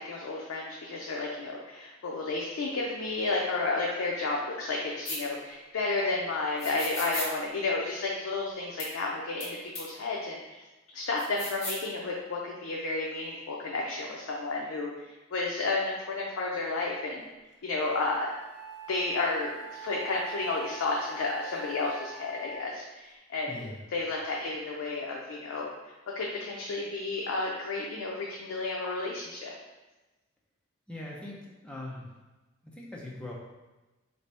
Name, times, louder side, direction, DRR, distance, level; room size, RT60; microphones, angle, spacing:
voice 1, 0.0-10.6 10.9-17.2 17.6-18.3 18.9-25.7 26.2-29.5, left 3 dB, 80° left, -2 dB, 0.4 m, -32 dB
sound 1, 5.0-5.2 6.6-7.3 8.8-8.9 9.4-9.5 9.7-9.8 11.2-11.8, left 2 dB, 35° left, 0.9 m, -35 dB
Wind instrument woodwind instrument, 17.5-17.6 18.2-22.8, right 3 dB, 50° right, 0.5 m, -43 dB
voice 2, 23.5-23.8 30.9-32.1 32.6-33.3, left 1 dB, 5° left, -4 dB, 0.5 m, -41 dB
3.5 x 2.7 x 3.3 m, 1.1 s
head